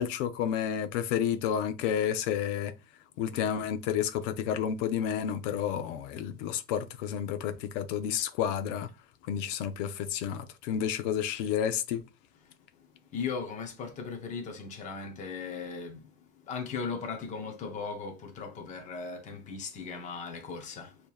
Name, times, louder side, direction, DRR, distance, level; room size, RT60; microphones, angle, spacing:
voice 1, 0.0-2.7 3.2-8.9 9.3-12.0, left 9 dB, 70° left, 0.7 m, -30 dB
voice 2, 13.1-16.1 16.5-21.0, left 5 dB, 20° left, 0.7 m, -37 dB
6.5 x 2.9 x 2.3 m
cardioid pair, 165°, 38 cm